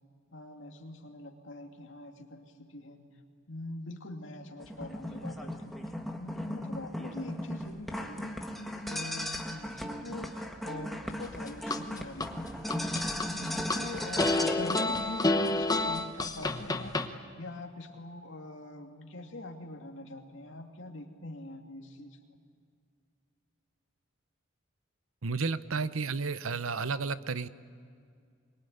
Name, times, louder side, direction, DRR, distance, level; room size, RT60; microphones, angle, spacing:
voice 1, 0.3-3.0 3.5-12.4 12.9-22.2, left 2 dB, 65° left, 3 dB, 2.5 m, -43 dB
sound 1, 4.6-14.8, equal, ahead, 1.5 m, -37 dB
sound 2, 11.2-12.3 12.7-13.8 14.2-17.1, left 2 dB, 20° left, 1.0 m, -28 dB
voice 2, 25.2-27.5, right 4 dB, 85° right, 14 dB, 0.8 m, -32 dB
24.0 x 22.5 x 9.5 m, 2.2 s
head